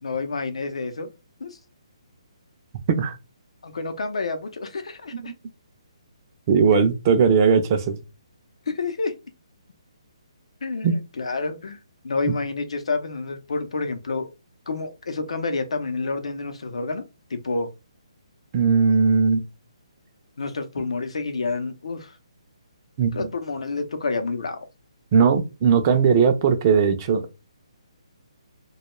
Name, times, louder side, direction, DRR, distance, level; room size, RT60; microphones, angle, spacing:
voice 1, 0.0-1.1 1.4-1.6 3.6-5.3 6.7-6.8 8.7-9.1 10.6-11.8 12.0-14.3 14.7-17.0 17.3-17.7 20.4-22.1 23.1-24.7, left 3 dB, 75° left, 0.6 m, -29 dB
voice 2, 6.5-8.0 10.8-10.9 12.3-12.4 18.5-19.4 23.0-23.3 25.1-27.4, right 6 dB, 30° right, 0.4 m, -19 dB
2.2 x 2.2 x 2.9 m
hypercardioid pair, 155°, 3 cm